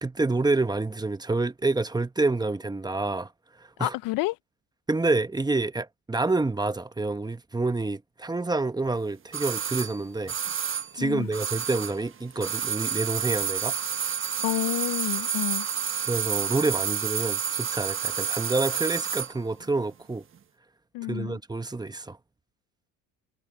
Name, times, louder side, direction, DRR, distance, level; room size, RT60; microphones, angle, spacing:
voice 1, 0.0-3.3 3.6-3.9 4.9-10.3 10.9-13.7 16.1-20.2 21.0-22.2, right 3 dB, 10° right, 1.2 m, -28 dB
voice 2, 3.8-4.4 11.0-11.3 14.4-15.7 20.9-21.4, left 20 dB, 60° left, 0.5 m, -29 dB
sound 1, 9.3-12.1 12.3-19.4 19.6-19.7, right 7 dB, 35° right, 1.3 m, -29 dB
supercardioid pair, 90°, 37 cm